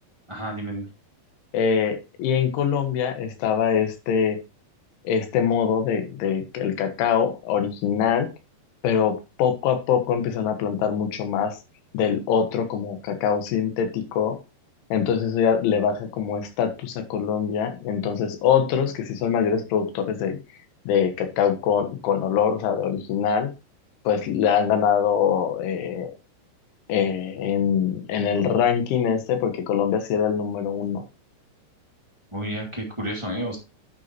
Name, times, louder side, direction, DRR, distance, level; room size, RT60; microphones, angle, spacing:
voice 1, 0.3-0.9 32.3-33.6, right 1 dB, 35° right, -2 dB, 0.4 m, -30 dB
voice 2, 1.5-4.4 5.1-8.3 8.8-11.6 11.9-14.4 14.9-20.4 20.9-23.5 24.1-26.1 26.9-31.0, left 7 dB, 85° left, 7 dB, 3.9 m, -23 dB
10.5 x 8.2 x 3.0 m, 0.28 s
omnidirectional pair, 5.3 m